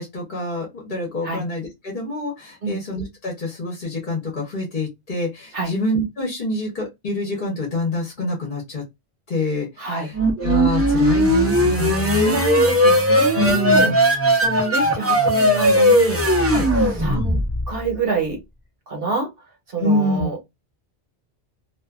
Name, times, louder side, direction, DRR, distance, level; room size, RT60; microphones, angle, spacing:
voice 1, 0.0-8.8 9.3-12.4 13.3-14.0 16.5-16.7 19.8-20.3, left 1 dB, 50° left, 1.0 m, -26 dB
voice 2, 9.8-10.1 12.2-13.9 14.4-16.5 17.0-17.4 17.7-18.4 18.9-19.3 19.7-20.4, right 4 dB, 60° right, 1.2 m, -26 dB
sound 1, 10.1-17.8, equal, 15° right, 0.5 m, -18 dB
2.6 x 2.4 x 2.3 m
omnidirectional pair, 1.1 m